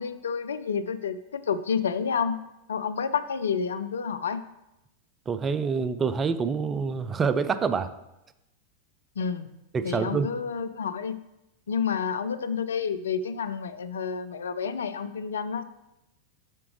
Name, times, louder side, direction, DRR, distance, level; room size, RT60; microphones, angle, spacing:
voice 1, 0.0-2.4 2.7-4.4 9.2-9.5 9.8-11.2 11.7-15.6, left 6 dB, 65° left, 12 dB, 0.3 m, -29 dB
voice 2, 5.3-7.9 9.7-10.3, right 5 dB, 20° right, 12 dB, 0.4 m, -26 dB
7.5 x 5.8 x 3.2 m, 0.90 s
figure-of-eight pair, 90°, 0 cm